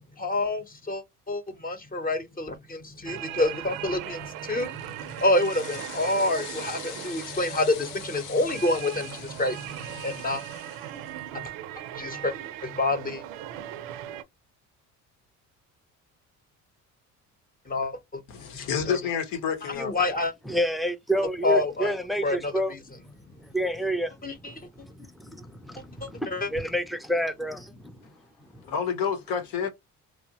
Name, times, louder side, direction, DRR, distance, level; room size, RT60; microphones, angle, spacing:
voice 1, 0.2-10.4 11.3-11.5 11.9-12.3 12.6-13.2 17.7-18.2 18.5-19.0 19.7-20.3 21.4-22.0 22.2-22.8 24.2-24.7 26.0-26.5, left 2 dB, 25° left, 0.8 m, -28 dB
sound 1, 3.1-14.2, right 12 dB, 90° right, 0.5 m, -39 dB
sound 2, 4.4-11.4, left 10 dB, 65° left, 0.6 m, -44 dB
voice 2, 18.3-19.9 28.6-29.7, left 7 dB, 80° left, 0.9 m, -29 dB
voice 3, 20.5-22.7 23.4-24.1 24.4-28.0 28.5-28.6, right 1 dB, ahead, 0.4 m, -29 dB
3.0 x 2.1 x 2.7 m
cardioid pair, 90°, 34 cm